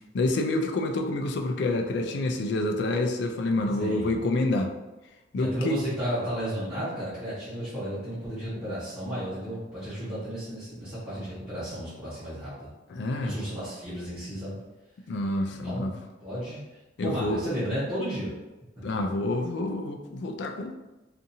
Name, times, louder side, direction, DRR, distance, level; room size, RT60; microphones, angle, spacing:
voice 1, 0.1-4.7 5.3-5.8 12.9-13.4 15.1-16.0 17.0-17.4 18.8-20.7, left 2 dB, 65° left, 4 dB, 0.3 m, -28 dB
voice 2, 3.8-4.2 5.4-12.7 13.2-14.6 15.6-15.9 16.2-16.6 17.0-18.3, equal, 5° right, -15 dB, 1.1 m, -33 dB
2.7 x 2.5 x 2.6 m, 1.1 s
head